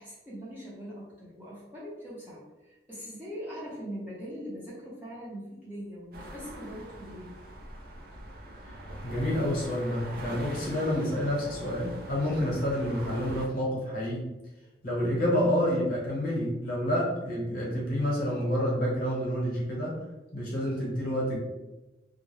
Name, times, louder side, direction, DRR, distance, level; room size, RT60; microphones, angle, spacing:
voice 1, 0.0-7.4, equal, 10° right, -8 dB, 0.6 m, -41 dB
sound 1, 6.1-13.5, right 1 dB, 50° right, 0.4 m, -43 dB
voice 2, 9.0-14.3 14.8-20.0 20.3-21.4, equal, 50° left, -4 dB, 0.8 m, -28 dB
2.3 x 2.1 x 3.1 m, 1.1 s
head